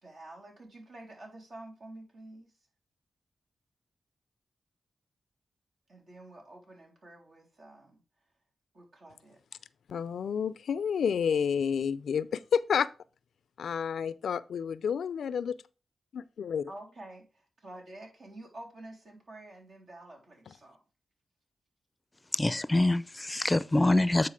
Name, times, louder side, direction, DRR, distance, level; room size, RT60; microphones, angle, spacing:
voice 1, 0.0-2.6 5.9-8.0 8.7-9.4 16.7-20.8, right 1 dB, 70° right, 3.5 m, -49 dB
voice 2, 9.9-12.9 13.6-15.6 16.1-16.7 20.5-20.6, left 7 dB, 85° left, 0.4 m, -30 dB
voice 3, 22.3-24.3, left 2 dB, 25° left, 0.5 m, -25 dB
9.6 x 4.0 x 5.0 m
supercardioid pair, 40°, 0 cm